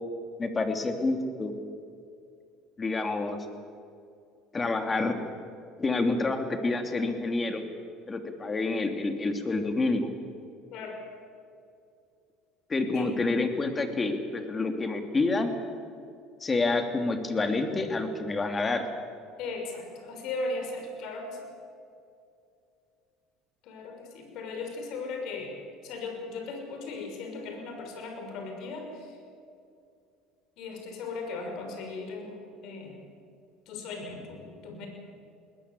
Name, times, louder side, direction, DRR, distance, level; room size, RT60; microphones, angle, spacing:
voice 1, 0.4-1.5 2.8-3.4 4.5-5.1 5.8-7.6 8.1-10.1 12.7-15.5 16.4-18.8, left 3 dB, 20° left, 6 dB, 2.9 m, -28 dB
voice 2, 19.4-21.5 23.6-25.5 25.8-29.2 30.6-32.3 32.6-33.0 33.7-34.9, left 3 dB, 65° left, 4 dB, 6.0 m, -37 dB
20.5 x 20.5 x 8.4 m, 2.5 s
supercardioid pair, 105°, 0 cm